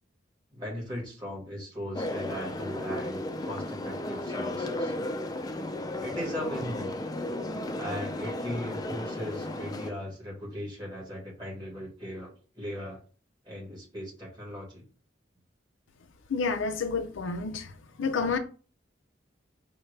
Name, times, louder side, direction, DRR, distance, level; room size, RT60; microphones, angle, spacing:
voice 1, 0.5-4.9 6.0-7.0 7.7-13.0 13.4-14.8, equal, 20° right, 1.5 m, -38 dB
sound 1, 1.9-9.9, left 1 dB, 20° left, 0.3 m, -34 dB
voice 2, 16.3-17.7 18.0-18.4, left 4 dB, 85° left, 0.5 m, -29 dB
5.6 x 2.1 x 3.2 m
head